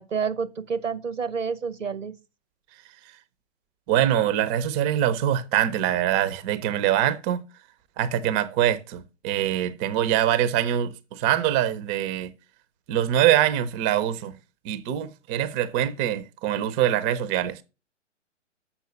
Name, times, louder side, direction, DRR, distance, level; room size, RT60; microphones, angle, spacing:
voice 1, 0.0-2.1, right 6 dB, 90° right, 1.4 m, -29 dB
voice 2, 3.9-7.4 8.0-12.3 12.9-14.4 14.6-17.6, right 11 dB, 25° right, 0.7 m, -24 dB
7.1 x 5.8 x 6.9 m
figure-of-eight pair, 120°, 37 cm